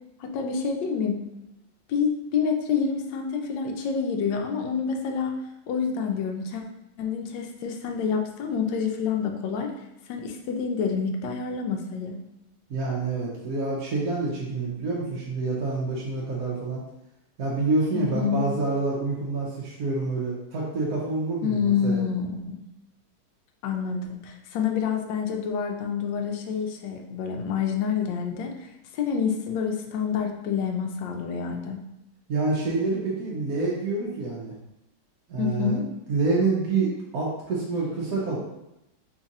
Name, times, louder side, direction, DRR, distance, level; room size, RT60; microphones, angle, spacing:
voice 1, 0.2-1.2 1.9-5.4 5.7-6.6 7.0-9.7 10.1-12.2 17.9-18.4 21.4-22.6 23.6-28.7 28.9-31.8 35.4-35.9, left 6 dB, 75° left, 3 dB, 1.2 m, -27 dB
voice 2, 12.7-16.8 17.4-22.0 32.3-34.5 35.3-35.8 36.1-38.4, right 3 dB, 60° right, -4 dB, 1.0 m, -27 dB
3.5 x 2.5 x 4.0 m, 0.87 s
omnidirectional pair, 2.2 m